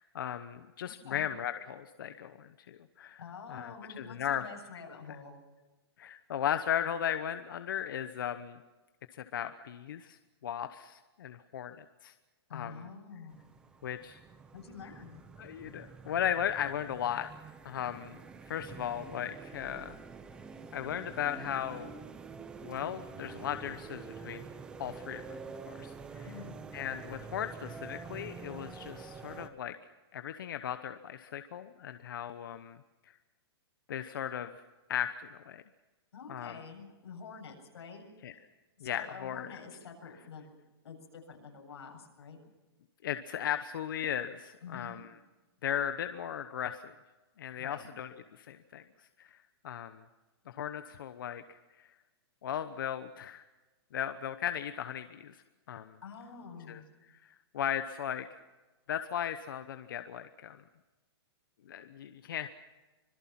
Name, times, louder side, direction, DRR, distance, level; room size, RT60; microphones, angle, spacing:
voice 1, 0.0-3.2 3.5-4.4 6.0-8.6 9.1-12.1 12.5-12.7 13.8-14.2 15.4-17.3 17.6-18.2 18.5-20.0 20.7-21.9 22.6-24.4 24.8-25.4 25.7-26.3 26.7-29.7 30.1-32.8 33.9-34.5 34.9-35.6 36.3-36.6 38.2-38.3 38.8-39.5 43.0-45.1 45.6-46.9 47.4-48.1 48.4-48.8 49.2-49.4 49.6-50.0 50.5-51.9 52.4-53.4 53.9-55.4 55.7-56.0 56.7-56.8 57.2-58.4 58.9-60.6 61.7-62.5, left 9 dB, 55° left, 10 dB, 1.0 m, -36 dB
voice 2, 0.9-1.3 3.2-5.4 12.5-13.4 14.5-15.2 26.2-26.6 36.1-38.1 38.8-42.4 44.6-45.1 47.6-47.9 56.0-56.9, left 5 dB, 90° left, 2 dB, 7.6 m, -47 dB
sound 1, 13.3-29.5, right 5 dB, 5° right, 0.7 m, -47 dB
26.0 x 21.5 x 5.9 m, 1.2 s
hypercardioid pair, 180°, 14 cm